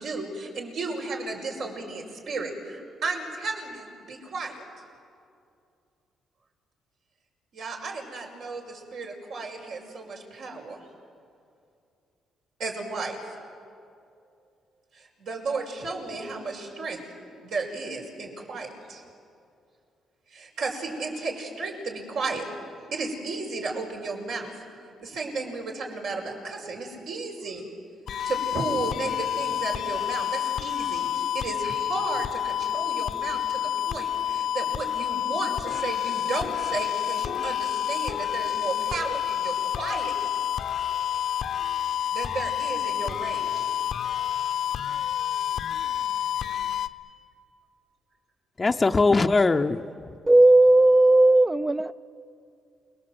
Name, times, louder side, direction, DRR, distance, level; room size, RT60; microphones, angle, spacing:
voice 1, 0.0-4.6 7.5-10.8 12.6-13.4 14.9-17.0 17.4-19.0 20.3-22.4 22.9-24.5 25.0-27.7 28.2-40.1 42.1-43.7, right 3 dB, 75° right, 0 dB, 5.6 m, -34 dB
sound 1, 28.1-46.9, left 10 dB, 65° left, 0.8 m, -29 dB
voice 2, 48.6-50.1, left 3 dB, 25° left, 4 dB, 0.7 m, -21 dB
voice 3, 50.3-51.9, right 2 dB, 15° right, 14 dB, 0.5 m, -16 dB
29.0 x 21.5 x 8.0 m, 2.5 s
cardioid pair, 90°, 0 cm